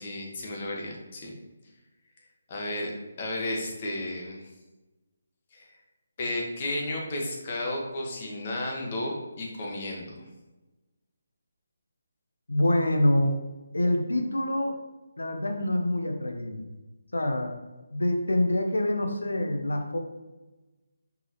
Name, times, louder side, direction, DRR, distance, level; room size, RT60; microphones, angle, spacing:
voice 1, 0.0-1.3 2.5-2.9 3.2-4.5 5.5-5.6 6.2-10.2, left 1 dB, 40° left, -1 dB, 1.5 m, -33 dB
voice 2, 12.5-13.4 13.7-14.8 15.2-16.6 17.1-17.5 17.9-20.0, left 1 dB, 85° left, 4 dB, 1.0 m, -26 dB
5.6 x 5.4 x 3.1 m, 1.1 s
figure-of-eight pair, 150°, 0 cm